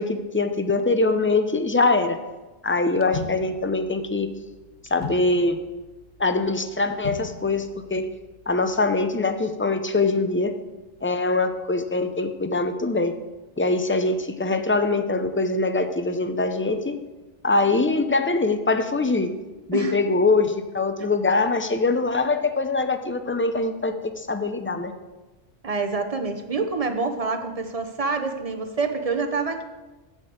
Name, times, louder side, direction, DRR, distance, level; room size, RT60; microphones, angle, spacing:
voice 1, 0.0-2.2 2.6-4.3 4.9-5.6 6.2-8.0 8.5-10.5 11.0-13.1 13.6-17.0 17.4-19.3 19.7-24.9, left 3 dB, 15° left, 8 dB, 0.5 m, -23 dB
sound 1, 3.1-9.2, left 5 dB, 45° left, 0.9 m, -40 dB
voice 2, 25.6-29.6, right 4 dB, 35° right, 7 dB, 0.8 m, -26 dB
7.7 x 7.3 x 7.8 m, 1.2 s
omnidirectional pair, 1.1 m